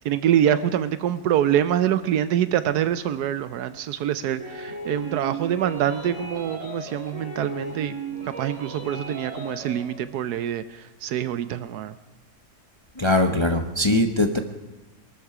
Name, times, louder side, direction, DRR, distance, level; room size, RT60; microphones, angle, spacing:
voice 1, 0.0-8.0 8.3-11.9, right 10 dB, 85° right, 13 dB, 1.2 m, -25 dB
sound 1, 4.4-9.9, right 3 dB, 45° right, 3.6 m, -36 dB
voice 2, 13.0-14.4, left 2 dB, 25° left, 6 dB, 0.8 m, -21 dB
22.5 x 13.0 x 4.9 m, 1.1 s
omnidirectional pair, 1.6 m